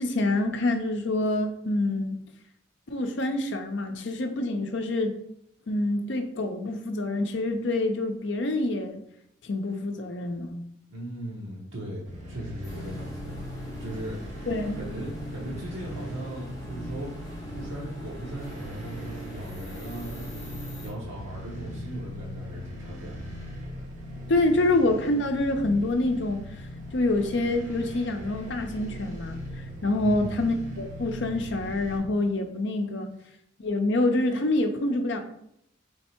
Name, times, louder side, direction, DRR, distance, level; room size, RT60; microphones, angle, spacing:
voice 1, 0.0-2.2 2.9-5.2 5.7-9.0 9.4-10.6 14.5-14.8 24.3-26.4 26.9-29.4 29.8-33.1 33.6-35.2, left 2 dB, 60° left, 5 dB, 0.6 m, -26 dB
voice 2, 10.9-13.3 13.8-14.2 14.8-20.4 20.8-23.3 30.0-30.3, right 1 dB, 80° right, -5 dB, 1.1 m, -38 dB
sound 1, 12.0-32.0, equal, 40° right, 1.2 m, -40 dB
sound 2, 12.6-20.9, equal, 15° left, 1.0 m, -43 dB
3.5 x 3.3 x 4.4 m, 0.74 s
head